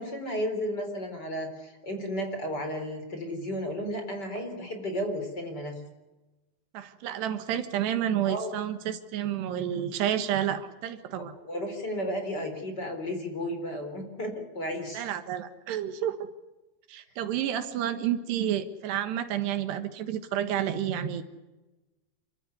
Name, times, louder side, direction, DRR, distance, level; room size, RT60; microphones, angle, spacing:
voice 1, 0.0-5.7 8.3-8.5 11.2-15.0, equal, 25° left, 5 dB, 4.2 m, -33 dB
voice 2, 6.7-11.3 14.9-16.2 16.9-21.2, right 10 dB, 80° right, 9 dB, 3.5 m, -30 dB
29.0 x 14.5 x 9.7 m, 1.1 s
omnidirectional pair, 4.9 m